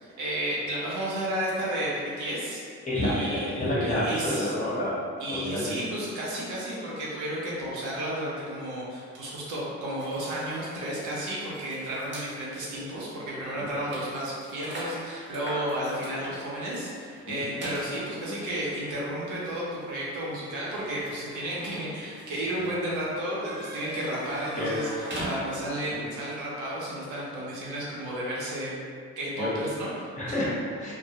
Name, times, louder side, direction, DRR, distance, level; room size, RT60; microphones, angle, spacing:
voice 1, 0.0-4.5 5.2-24.9 25.3-28.8 29.2-30.4, right 1 dB, 80° right, -6 dB, 0.7 m, -32 dB
voice 2, 2.8-5.0 5.3-5.8 13.6-13.7 17.3-17.4 24.5-24.7 25.9-26.0 29.4-29.5 30.2-30.9, left 1 dB, 25° left, -8 dB, 0.8 m, -29 dB
sound 1, 10.0-12.3 13.0-13.2 13.4-25.9, right 1 dB, 40° right, 0.7 m, -41 dB
2.2 x 2.0 x 2.7 m, 2.2 s
cardioid pair, 90°, 30 cm